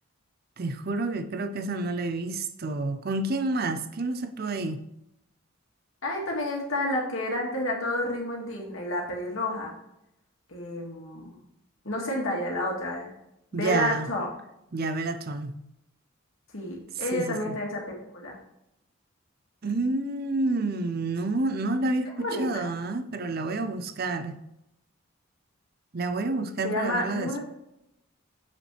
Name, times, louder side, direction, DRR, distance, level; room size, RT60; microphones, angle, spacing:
voice 1, 0.6-4.8 13.5-14.1 14.7-15.5 17.0-17.5 19.6-24.3 25.9-27.4, right 2 dB, 45° right, 9 dB, 0.5 m, -29 dB
voice 2, 6.0-9.7 10.5-11.4 11.8-13.1 13.5-14.3 16.5-17.8 18.1-18.4 22.2-22.7 26.6-27.4, left 1 dB, 70° left, -1 dB, 2.3 m, -30 dB
7.5 x 6.3 x 3.4 m, 0.82 s
head